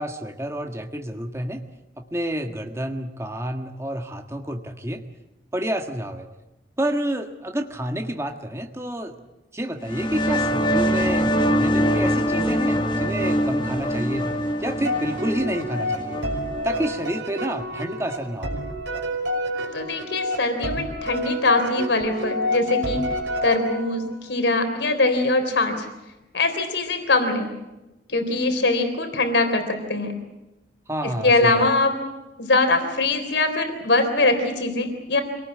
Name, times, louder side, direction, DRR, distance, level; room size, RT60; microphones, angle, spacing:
voice 1, 0.0-1.6 2.0-5.0 5.5-6.3 6.8-9.2 9.5-14.2 14.6-16.2 16.6-18.5 30.9-31.7, equal, 15° right, 4 dB, 1.6 m, -29 dB
sound 1, 9.8-17.2, equal, 25° left, 1.3 m, -24 dB
sound 2, 14.8-24.1, left 1 dB, 70° right, 5.5 m, -29 dB
voice 2, 19.7-23.0 23.4-25.9 26.3-27.5 28.1-30.1 31.2-31.9 32.4-35.2, left 2 dB, 75° left, 6 dB, 3.7 m, -22 dB
25.5 x 18.5 x 8.6 m, 1.0 s
head